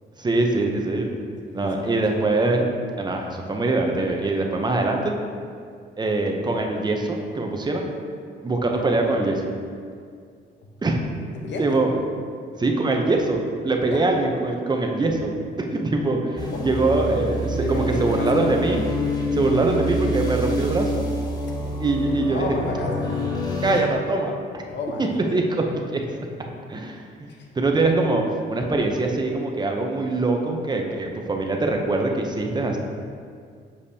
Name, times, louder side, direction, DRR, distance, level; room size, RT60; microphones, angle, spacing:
voice 1, 0.2-1.1 1.5-2.6 3.0-5.1 6.0-7.8 8.4-9.4 10.8-11.0 11.6-11.9 12.6-18.8 19.1-21.0 21.8-22.6 23.6-24.6 25.1-26.0 26.7-27.3 27.5-32.8, right 2 dB, 20° right, 2 dB, 0.7 m, -23 dB
voice 2, 1.5-2.0 8.7-8.9 11.3-11.8 13.9-14.0 16.5-16.6 17.6-18.5 22.3-23.3 24.7-25.2 27.3-27.5, left 2 dB, 65° left, 1 dB, 1.0 m, -32 dB
sound 1, 16.4-23.8, left 1 dB, 20° left, 1.0 m, -26 dB
6.9 x 5.0 x 2.8 m, 2.2 s
cardioid pair, 90°, 20 cm